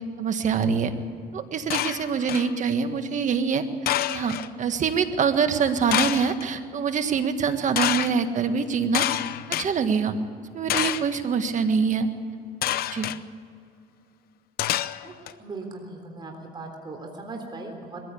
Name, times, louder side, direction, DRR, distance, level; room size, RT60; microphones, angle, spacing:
voice 1, 0.2-0.9 1.3-3.6 4.1-9.1 9.5-10.1 10.5-12.1 12.9-13.1, right 6 dB, 45° right, 8 dB, 1.7 m, -24 dB
sound 1, 1.7-2.5 3.9-4.5 5.9-6.4 7.8-8.1 8.9-9.7 10.7-11.2 12.6-13.2 14.6-15.3, left 12 dB, 65° left, 0.7 m, -27 dB
voice 2, 15.0-18.0, right 3 dB, 25° right, 2 dB, 3.6 m, -38 dB
21.5 x 15.5 x 8.5 m, 2.4 s
cardioid pair, 110°, 17 cm